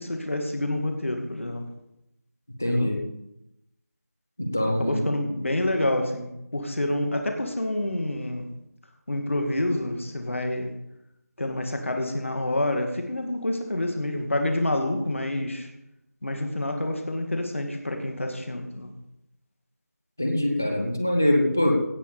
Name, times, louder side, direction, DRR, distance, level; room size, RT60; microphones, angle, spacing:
voice 1, 0.0-1.6 2.6-2.9 4.7-8.5 9.1-10.7 11.4-15.7 16.2-18.9, left 1 dB, 50° left, 4 dB, 2.3 m, -28 dB
voice 2, 2.6-3.0 4.4-5.1 20.2-21.7, left 1 dB, 10° left, 3 dB, 0.5 m, -23 dB
17.0 x 6.8 x 5.0 m, 0.85 s
figure-of-eight pair, 175°, 9 cm